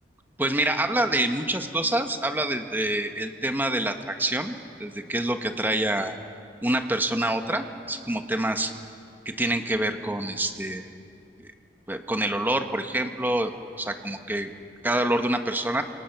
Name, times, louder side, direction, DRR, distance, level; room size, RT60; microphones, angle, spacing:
voice 1, 0.4-6.1 6.6-8.7 9.2-10.9 11.4-11.5 11.9-13.5 13.8-14.5 14.8-15.8, right 1 dB, 10° right, 6 dB, 1.3 m, -26 dB
29.5 x 27.0 x 6.1 m, 2.4 s
head